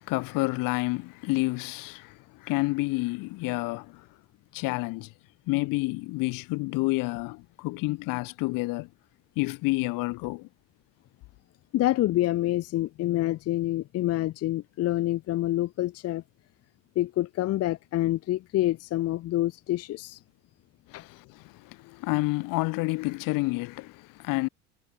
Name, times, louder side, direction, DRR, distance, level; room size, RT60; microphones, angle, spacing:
voice 1, 0.0-4.0 4.5-5.1 5.5-8.9 9.4-10.5 20.9-24.5, left 23 dB, 60° left, 1.5 m, -29 dB
voice 2, 11.7-16.2 17.0-20.2 20.9-21.0, left 15 dB, 40° left, 0.7 m, -27 dB
hypercardioid pair, 90°, 37 cm